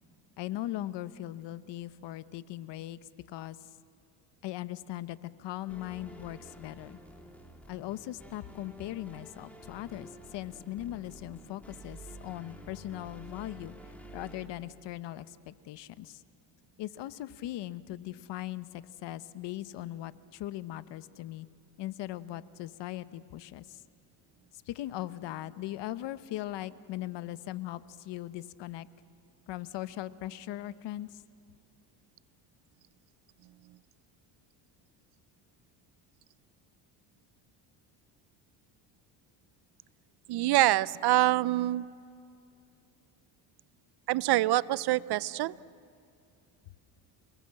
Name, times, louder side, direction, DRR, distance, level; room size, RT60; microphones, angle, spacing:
voice 1, 0.4-3.0 3.3-3.7 4.4-7.0 7.7-16.2 16.8-21.5 21.8-23.8 24.7-28.9 29.5-31.2, left 14 dB, 65° left, 15 dB, 1.0 m, -39 dB
sound 1, 5.7-14.5, right 1 dB, 5° left, 3.2 m, -50 dB
voice 2, 40.3-41.8 44.1-45.5, right 16 dB, 60° right, 20 dB, 0.6 m, -25 dB
29.0 x 19.5 x 7.6 m, 2.6 s
cardioid pair, 100°, 45 cm